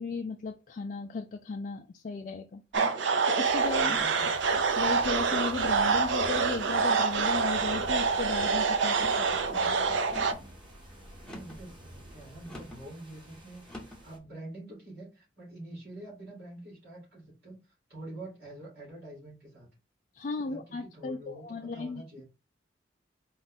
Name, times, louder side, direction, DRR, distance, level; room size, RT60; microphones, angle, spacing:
voice 1, 0.0-2.6 2.9-4.0 4.8-9.9 20.1-22.0, left 3 dB, 45° left, 4 dB, 0.3 m, -36 dB
sound 1, 2.7-3.2 3.9-4.3 5.0-5.5 6.2-6.6 7.3-7.7 8.8-9.3 10.1-10.5 11.2-11.7 12.5-12.8 13.6-14.0, left 1 dB, 5° left, 0.7 m, -45 dB
sound 2, 2.7-10.3, right 5 dB, 80° right, 0.6 m, -26 dB
sound 3, 3.4-14.2, equal, 25° right, 1.2 m, -48 dB
voice 2, 3.8-4.4 11.3-19.7 20.4-22.2, right 1 dB, 60° right, -6 dB, 2.7 m, -46 dB
4.4 x 2.4 x 4.0 m, 0.29 s
head